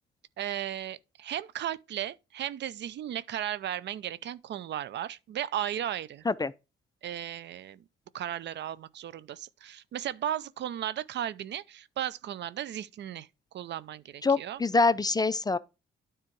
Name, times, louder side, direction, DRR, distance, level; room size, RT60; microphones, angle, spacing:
voice 1, 0.4-6.2 7.0-7.8 8.1-13.3 13.5-14.6, right 11 dB, 60° right, 0.5 m, -35 dB
voice 2, 14.2-15.6, left 3 dB, 20° left, 0.4 m, -25 dB
9.7 x 3.7 x 4.5 m
cardioid pair, 90°, 20 cm